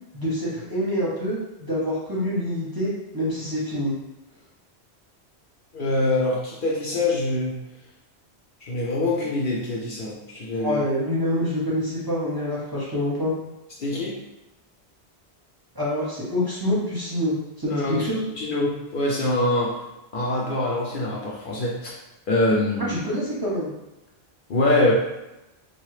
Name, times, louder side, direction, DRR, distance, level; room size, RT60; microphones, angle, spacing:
voice 1, 0.1-3.9 10.6-13.3 15.7-18.2 22.8-23.7, left 1 dB, 25° right, -8 dB, 0.6 m, -26 dB
voice 2, 5.7-7.6 8.6-10.8 13.8-14.2 17.7-19.8 20.1-21.9 22.3-23.0 24.5-24.9, left 2 dB, 60° left, -4 dB, 0.7 m, -24 dB
2.8 x 2.3 x 3.1 m, 0.94 s
omnidirectional pair, 1.1 m